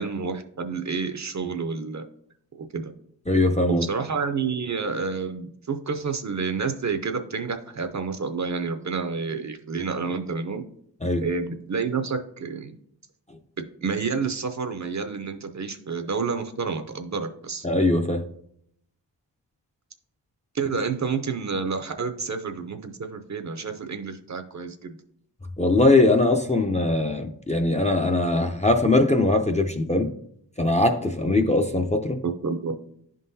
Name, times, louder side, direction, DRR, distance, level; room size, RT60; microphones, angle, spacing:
voice 1, 0.0-2.1 2.6-2.9 3.7-10.6 11.2-12.8 13.6-17.7 20.5-25.0 32.2-32.7, right 5 dB, 40° right, 7 dB, 0.5 m, -29 dB
voice 2, 3.3-3.8 11.0-11.2 17.6-18.2 25.6-30.1 30.6-32.2, left 2 dB, 15° left, 4 dB, 0.4 m, -21 dB
11.0 x 3.8 x 2.7 m, 0.70 s
wide cardioid pair, 90°, 44 cm